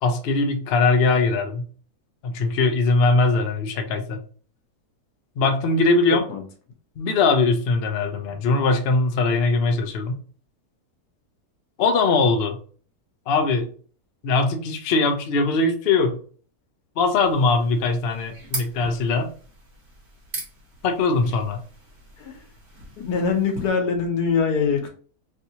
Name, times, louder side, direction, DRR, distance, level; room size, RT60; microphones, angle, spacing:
voice 1, 0.0-1.6 2.2-4.2 5.4-6.3 7.0-10.1 11.8-12.6 13.3-13.7 14.2-16.2 17.0-19.3 20.8-21.6, left 3 dB, 65° left, 6 dB, 0.6 m, -21 dB
sound 1, 17.2-23.7, right 2 dB, 45° right, 1.5 m, -39 dB
voice 2, 23.0-24.9, left 5 dB, 90° left, 4 dB, 1.4 m, -23 dB
3.3 x 2.7 x 2.8 m, 0.43 s
omnidirectional pair, 1.6 m